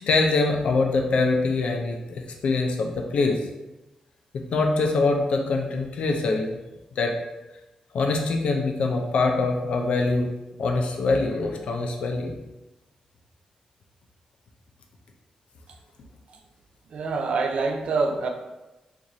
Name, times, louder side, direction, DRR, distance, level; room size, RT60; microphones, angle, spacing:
voice 1, 0.0-3.4 4.3-6.6 7.0-7.1 7.9-10.3 10.6-12.3, left 3 dB, 75° left, 2 dB, 0.5 m, -24 dB
voice 2, 16.9-18.3, right 4 dB, 60° right, 4 dB, 0.4 m, -25 dB
4.6 x 2.5 x 2.7 m, 1.0 s
wide cardioid pair, 140°, 2 cm